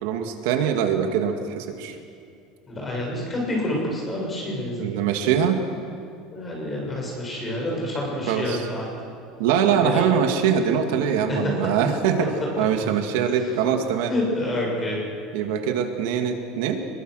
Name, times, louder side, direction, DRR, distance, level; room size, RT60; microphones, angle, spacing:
voice 1, 0.0-2.0 4.8-5.6 8.3-8.6 9.4-12.3 12.6-14.1 15.3-16.8, right 8 dB, 75° right, 4 dB, 2.1 m, -23 dB
voice 2, 2.6-4.9 6.3-8.9 9.8-10.0 11.3-11.5 13.3-13.5 14.1-15.0, left 1 dB, 15° left, -2 dB, 6.3 m, -28 dB
24.5 x 22.0 x 6.5 m, 2.4 s
cardioid pair, 175°, 0 cm